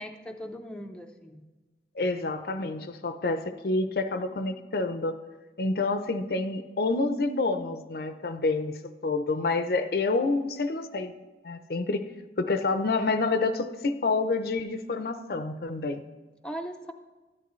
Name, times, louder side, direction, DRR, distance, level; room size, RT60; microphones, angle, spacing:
voice 1, 0.0-1.5 16.4-16.9, equal, 5° left, 3 dB, 0.5 m, -39 dB
voice 2, 2.0-5.2 5.6-8.8 9.0-11.1 11.4-12.0 12.4-16.0, left 3 dB, 60° left, 9 dB, 0.5 m, -28 dB
13.0 x 10.5 x 3.1 m, 1.2 s
head